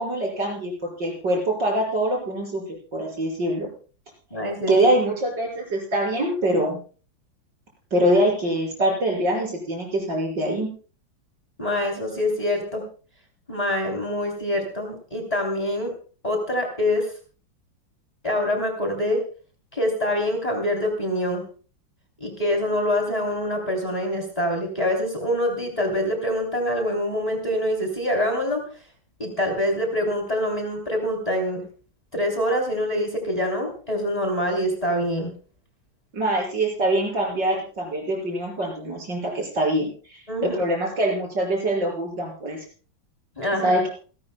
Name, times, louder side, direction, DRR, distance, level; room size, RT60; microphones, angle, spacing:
voice 1, 0.0-3.7 4.7-6.8 7.9-10.7 36.1-42.6 43.6-43.9, right 1 dB, 65° right, -1 dB, 6.3 m, -24 dB
voice 2, 4.3-4.7 11.6-12.8 13.5-15.9 16.2-17.1 18.2-19.2 19.7-21.4 22.2-28.6 29.2-31.7 32.1-35.3 40.3-40.6 43.4-43.8, left 1 dB, 20° left, 2 dB, 3.4 m, -25 dB
27.5 x 12.0 x 2.2 m, 0.39 s
omnidirectional pair, 2.1 m